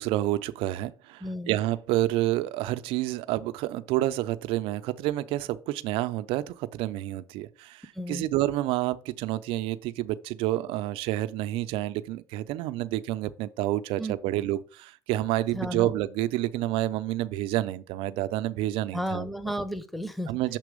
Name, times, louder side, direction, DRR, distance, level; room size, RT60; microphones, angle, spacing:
voice 1, 0.0-19.3 20.3-20.6, right 15 dB, 65° right, 0.5 m, -29 dB
voice 2, 1.2-1.6 8.0-8.3 14.0-14.1 15.5-15.9 18.9-20.3, equal, ahead, 0.7 m, -33 dB
6.8 x 3.0 x 5.0 m
hypercardioid pair, 75°, 10 cm